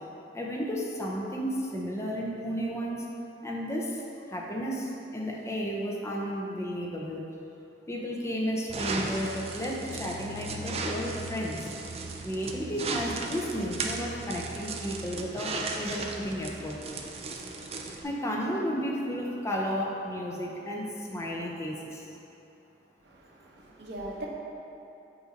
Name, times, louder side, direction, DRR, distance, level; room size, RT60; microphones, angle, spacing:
voice 1, 0.3-3.1 3.4-4.0 4.3-7.2 7.9-11.7 12.2-16.8 18.0-22.0, equal, 15° left, -2 dB, 0.6 m, -33 dB
sound 1, 8.7-18.0, right 3 dB, 35° right, 0.4 m, -36 dB
voice 2, 23.0-24.3, right 1 dB, 70° right, -3 dB, 0.9 m, -41 dB
7.7 x 2.7 x 5.1 m, 2.9 s
head